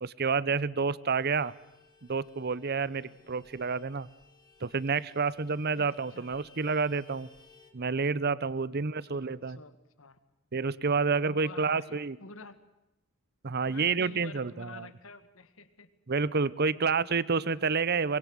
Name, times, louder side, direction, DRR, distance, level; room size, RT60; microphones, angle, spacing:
voice 1, 0.0-1.5 2.1-4.1 4.6-7.3 7.7-9.6 10.5-12.2 13.4-14.9 16.1-18.2, right 4 dB, 50° right, 20 dB, 0.8 m, -29 dB
Vehicle horn car horn honking, 1.2-7.7, left 4 dB, 20° left, 3.2 m, -60 dB
voice 2, 3.0-3.5 5.8-6.5 8.7-8.8 9.1-10.2 11.2-12.6 13.6-15.9, left 3 dB, 70° left, 12 dB, 1.9 m, -50 dB
24.0 x 21.5 x 8.0 m, 0.92 s
head